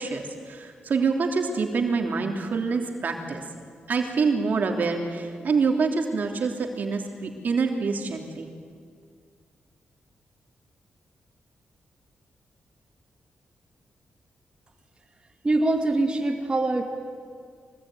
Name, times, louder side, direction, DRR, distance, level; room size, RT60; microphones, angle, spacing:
voice 1, 0.0-3.4 3.9-8.5, right 4 dB, 60° right, 3 dB, 3.2 m, -26 dB
voice 2, 15.4-16.8, right 2 dB, 30° right, 2 dB, 2.4 m, -23 dB
24.5 x 19.5 x 9.3 m, 2.1 s
cardioid pair, 70°, 3 cm